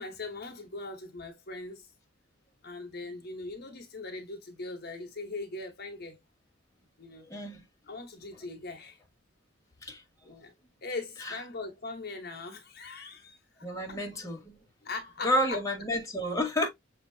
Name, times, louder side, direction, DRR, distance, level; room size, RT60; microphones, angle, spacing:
voice 1, 0.0-1.9 2.6-6.2 7.0-7.3 7.9-9.0 10.2-10.5 10.8-14.0 14.8-15.6, left 3 dB, 55° left, 1.0 m, -40 dB
voice 2, 7.3-7.6 9.8-10.0 11.2-11.3 13.6-14.6 15.2-16.7, equal, 15° left, 1.4 m, -30 dB
6.1 x 2.9 x 2.7 m
head